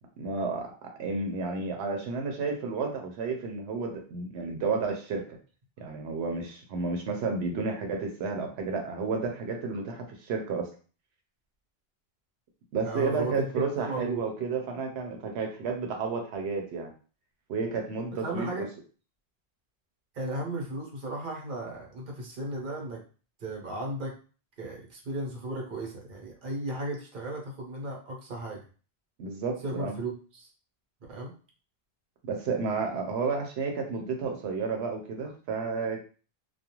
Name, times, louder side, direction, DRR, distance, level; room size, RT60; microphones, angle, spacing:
voice 1, 0.2-0.7 1.0-5.4 5.8-10.7 12.7-16.9 17.5-18.7 29.2-30.0 32.2-36.0, right 4 dB, 90° right, 2 dB, 0.8 m, -31 dB
voice 2, 12.8-14.2 18.2-18.7 20.1-23.0 23.4-24.1 24.6-28.6 29.6-30.5 31.1-31.3, right 2 dB, 55° right, -2 dB, 0.9 m, -35 dB
2.4 x 2.2 x 2.9 m, 0.38 s
omnidirectional pair, 1.1 m